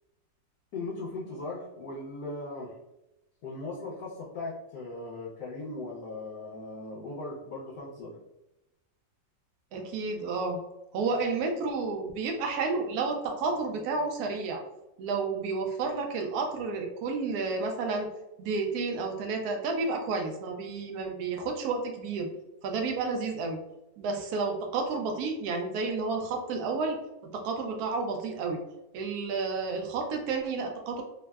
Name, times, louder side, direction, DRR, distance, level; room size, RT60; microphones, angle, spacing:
voice 1, 0.7-2.7 3.4-8.1, left 2 dB, 70° left, -4 dB, 1.1 m, -38 dB
voice 2, 9.7-10.6 10.9-14.6 15.0-18.1 18.4-22.3 22.6-23.6 24.0-28.6 28.9-31.0, right 4 dB, 70° right, 3 dB, 0.9 m, -31 dB
3.4 x 2.0 x 2.2 m, 0.91 s
omnidirectional pair, 2.0 m